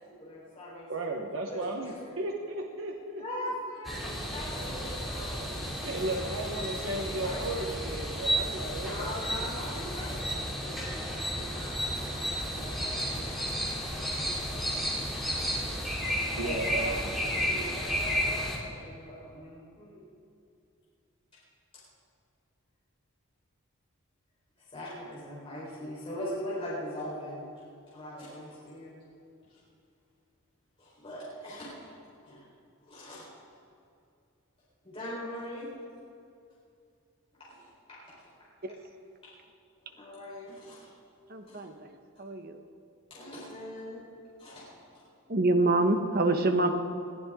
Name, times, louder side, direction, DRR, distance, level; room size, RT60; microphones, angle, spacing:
voice 1, 0.0-2.1 3.2-6.3 7.0-7.7 8.8-13.1 13.9-14.7 16.3-20.0 24.7-27.4 27.9-28.9 29.5-29.6 30.8-31.9 32.2-32.5 32.8-33.3 34.8-35.7 37.4-38.2 39.8-40.9 41.4-41.6 43.1-44.1 44.4-45.0, equal, 25° left, -8 dB, 4.3 m, -41 dB
voice 2, 0.9-3.5 5.8-9.2 16.3-17.0, right 2 dB, 65° right, 1 dB, 1.2 m, -35 dB
sound 1, 3.8-18.6, equal, ahead, 2.7 m, -32 dB
voice 3, 41.3-41.7 42.2-42.5 45.3-46.7, right 2 dB, 45° right, 6 dB, 1.1 m, -25 dB
21.0 x 14.5 x 3.7 m, 2.5 s
head